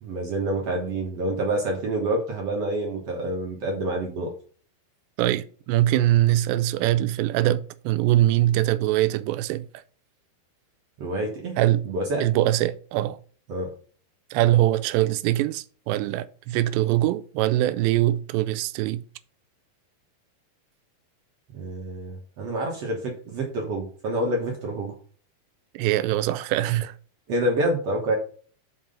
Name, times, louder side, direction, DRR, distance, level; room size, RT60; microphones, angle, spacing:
voice 1, 0.0-4.3 11.0-11.6 11.8-12.2 13.5-13.7 21.5-24.9 27.3-28.1, right 1 dB, 70° right, 1.5 m, -27 dB
voice 2, 5.2-9.7 11.6-11.9 12.2-13.2 14.3-19.0 25.7-26.9, right 14 dB, 85° right, 2.7 m, -22 dB
6.0 x 5.4 x 5.4 m
omnidirectional pair, 4.9 m